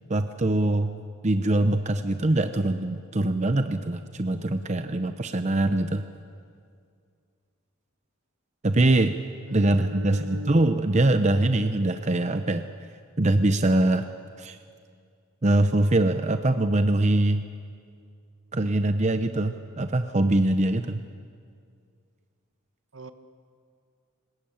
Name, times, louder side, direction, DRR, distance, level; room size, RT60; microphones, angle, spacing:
voice 1, 0.1-0.9 1.2-6.0 8.6-9.1 9.5-12.7 13.2-14.1 14.4-14.6 15.4-17.4 18.5-21.0, right 2 dB, 35° right, 8 dB, 0.7 m, -23 dB
voice 2, 9.4-10.5 22.9-23.1, right 1 dB, 65° right, 9 dB, 1.3 m, -40 dB
22.5 x 20.0 x 8.8 m, 2.2 s
head